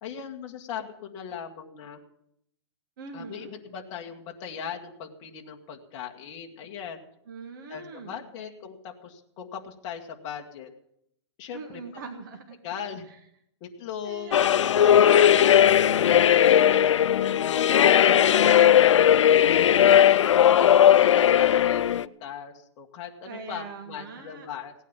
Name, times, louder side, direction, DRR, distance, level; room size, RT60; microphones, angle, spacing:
voice 1, 0.0-2.0 3.1-7.0 7.7-10.7 11.4-11.8 12.6-13.1 13.6-14.3 15.0-15.6 16.2-16.7 17.0-24.7, left 7 dB, 25° left, 1 dB, 1.7 m, -39 dB
voice 2, 3.0-3.6 7.3-8.2 11.5-12.6 14.0-14.8 15.2-15.5 16.6-17.5 23.3-24.5, right 5 dB, 45° right, 4 dB, 1.8 m, -42 dB
sound 1, 14.3-22.1, left 10 dB, 90° left, 0.5 m, -18 dB
17.0 x 9.1 x 7.3 m, 0.74 s
hypercardioid pair, 170°, 15 cm